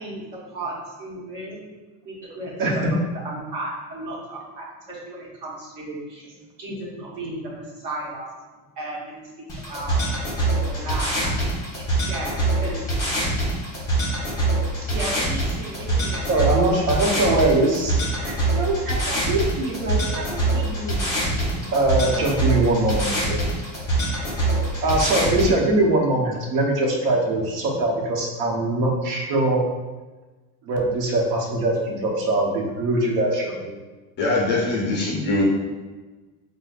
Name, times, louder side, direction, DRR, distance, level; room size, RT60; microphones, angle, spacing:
voice 1, 0.0-1.7 2.0-3.0 3.2-6.3 6.6-8.3 8.8-9.3 9.7-10.1 10.4-11.3 11.6-12.8 14.9-16.6 16.9-17.0, right 1 dB, 50° right, -4 dB, 1.1 m, -34 dB
sound 1, 9.5-25.5, right 2 dB, 10° left, 1.0 m, -24 dB
voice 2, 16.3-21.0 21.6-23.4 24.8-29.6 30.7-33.8, right 2 dB, 80° right, -1 dB, 0.9 m, -22 dB
voice 3, 34.2-35.4, left 2 dB, 30° left, -2 dB, 0.4 m, -22 dB
4.9 x 2.2 x 2.4 m, 1.2 s
cardioid pair, 165°, 39 cm